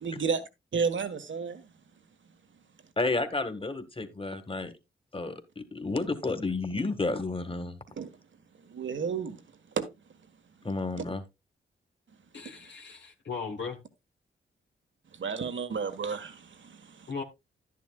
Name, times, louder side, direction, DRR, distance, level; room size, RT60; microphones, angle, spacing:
voice 1, 0.0-0.4 0.7-1.6 8.0-8.1 8.7-9.4 9.8-9.9 15.1-17.1, right 5 dB, 65° right, 1.5 m, -32 dB
voice 2, 3.0-4.7 5.1-7.8 10.6-11.2, left 3 dB, 25° left, 1.8 m, -31 dB
voice 3, 12.3-13.8 17.1-17.2, left 5 dB, 60° left, 1.3 m, -37 dB
11.0 x 10.5 x 2.4 m
cardioid pair, 55°, 21 cm